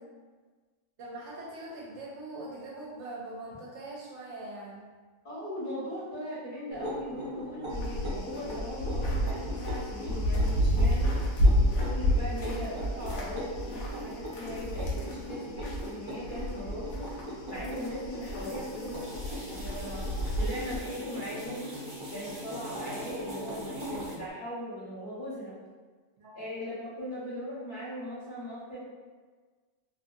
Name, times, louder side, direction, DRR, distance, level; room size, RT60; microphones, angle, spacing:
voice 1, 1.0-4.8 26.2-26.4, right 2 dB, 65° right, -4 dB, 0.8 m, -42 dB
voice 2, 5.2-11.1 11.7-17.1 17.5-20.1 20.4-21.6 22.1-25.5 26.3-28.8, equal, 40° left, -9 dB, 0.9 m, -39 dB
sound 1, 6.7-24.1, equal, 40° right, 0.4 m, -40 dB
sound 2, 7.7-15.9 16.2-20.8, equal, 80° left, 1.0 m, -30 dB
sound 3, 18.2-24.2, equal, 10° right, 1.1 m, -49 dB
2.7 x 2.5 x 2.6 m, 1.4 s
omnidirectional pair, 1.4 m